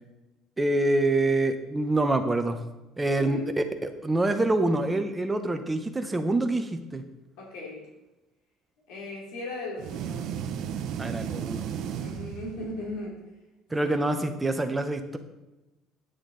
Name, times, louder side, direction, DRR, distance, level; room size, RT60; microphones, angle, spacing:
voice 1, 0.6-2.6 3.0-3.4 3.8-7.0 11.0-11.7 13.7-15.2, right 2 dB, 10° right, 6 dB, 0.9 m, -26 dB
voice 2, 3.0-3.5 7.4-7.8 8.9-10.3 12.0-13.2 13.8-14.1, left 2 dB, 90° left, -3 dB, 2.8 m, -37 dB
sound 1, 9.8-12.9, right 8 dB, 60° right, 0.7 m, -34 dB
9.4 x 8.3 x 3.9 m, 1.0 s
cardioid pair, 135°, 0 cm